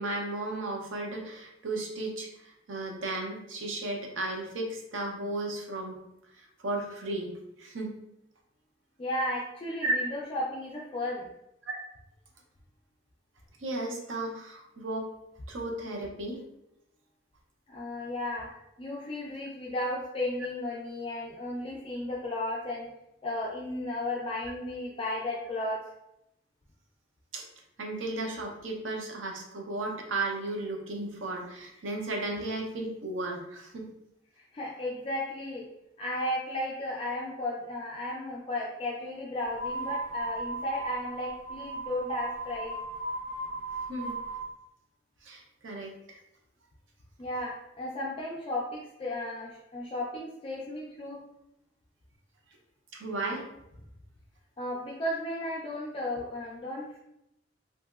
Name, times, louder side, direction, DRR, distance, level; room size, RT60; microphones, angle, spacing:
voice 1, 0.0-6.0 6.4-7.3 7.6-7.9 9.8-9.9 11.7-11.8 13.6-15.1 15.5-16.4 27.3-27.4 27.8-33.8 43.9-44.1 45.2-46.2 52.9-53.4, right 2 dB, 80° right, 1 dB, 0.6 m, -34 dB
voice 2, 9.0-11.3 17.7-18.5 18.8-22.9 23.2-25.8 34.5-35.7 36.0-42.8 47.2-51.2 54.6-57.0, left 1 dB, 30° left, -4 dB, 0.3 m, -34 dB
sound 1, 39.5-44.5, right 2 dB, 45° right, 0.8 m, -36 dB
2.9 x 2.6 x 2.3 m, 0.84 s
head